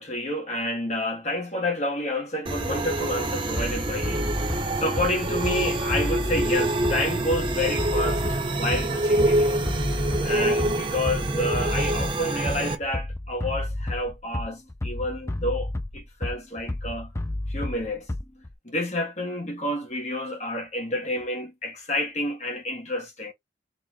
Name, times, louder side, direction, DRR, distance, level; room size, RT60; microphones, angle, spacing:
voice 1, 0.0-9.6 10.2-17.1 17.5-18.1 18.6-23.3, left 1 dB, 40° left, 1.7 m, -29 dB
sound 1, 2.5-12.8, right 1 dB, 30° right, 0.8 m, -26 dB
Bass drum, 3.6-18.5, left 1 dB, 15° left, 0.4 m, -31 dB
4.0 x 3.2 x 3.2 m
head